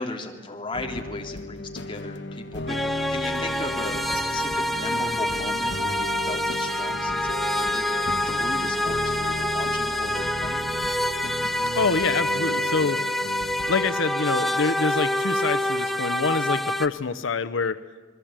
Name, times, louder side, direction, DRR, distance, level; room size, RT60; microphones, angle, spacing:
voice 1, 0.0-10.7, left 2 dB, 25° left, 2 dB, 3.3 m, -36 dB
sound 1, 0.7-14.0, left 2 dB, 65° left, 1.0 m, -35 dB
sound 2, 2.7-16.9, left 1 dB, ahead, 0.9 m, -26 dB
voice 2, 11.8-13.0 13.7-17.8, left 4 dB, 80° left, 12 dB, 0.8 m, -26 dB
27.5 x 21.0 x 8.8 m, 1.4 s
head